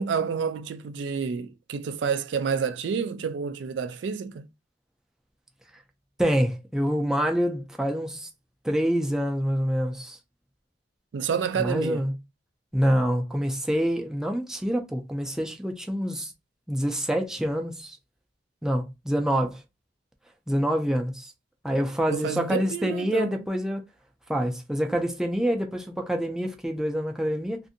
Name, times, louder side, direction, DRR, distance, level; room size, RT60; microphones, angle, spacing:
voice 1, 0.0-4.5 11.1-12.0 22.1-23.4, right 6 dB, 70° right, 0.3 m, -29 dB
voice 2, 6.2-8.3 8.6-10.2 11.6-12.1 12.7-16.3 16.7-18.0 18.6-19.6 20.5-21.3 21.6-23.8 24.3-27.6, equal, 5° right, 0.4 m, -26 dB
2.5 x 2.5 x 2.6 m
head